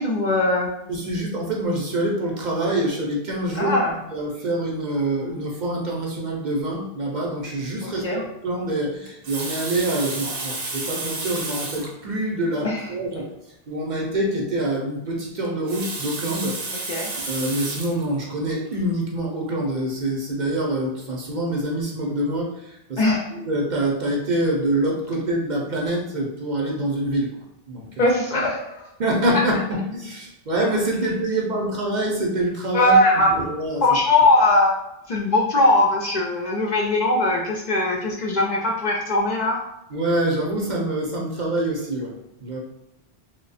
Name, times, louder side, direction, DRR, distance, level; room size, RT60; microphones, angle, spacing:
voice 1, 0.0-0.7 3.6-4.0 7.8-8.2 12.6-12.8 16.9-17.1 23.0-23.3 28.0-28.8 32.7-33.3 33.8-34.8 35.1-39.6, left 1 dB, 55° left, -1 dB, 0.5 m, -20 dB
voice 2, 0.9-3.7 4.1-13.3 13.7-16.9 17.2-23.0 23.3-28.1 29.0-33.0 33.3-33.8 39.9-42.2 42.4-42.6, right 1 dB, 50° right, -1 dB, 0.7 m, -25 dB
Water tap faucet, 9.1-12.0 12.8-12.9 13.1-13.2 15.4-18.0 18.7-18.9, right 3 dB, 75° right, 1.0 m, -31 dB
3.0 x 2.1 x 4.0 m, 0.86 s
omnidirectional pair, 1.0 m